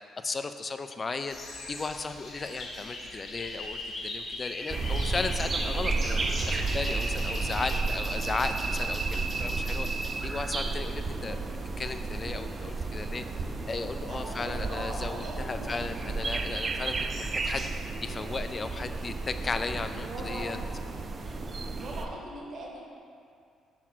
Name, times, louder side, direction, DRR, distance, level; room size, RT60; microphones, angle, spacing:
voice 1, 0.2-1.4 1.7-11.4 11.8-13.2 13.7-17.6 18.0-20.6, left 4 dB, 35° left, 9 dB, 0.3 m, -35 dB
sound 1, 1.3-7.8, left 2 dB, 60° left, 1.1 m, -40 dB
sound 2, 4.7-22.1, right 3 dB, 40° right, 0.4 m, -32 dB
voice 2, 14.1-15.7 19.9-20.6 21.7-22.8, right 1 dB, 60° right, -1 dB, 1.1 m, -40 dB
6.0 x 4.1 x 4.4 m, 2.4 s
cardioid pair, 90°, 0 cm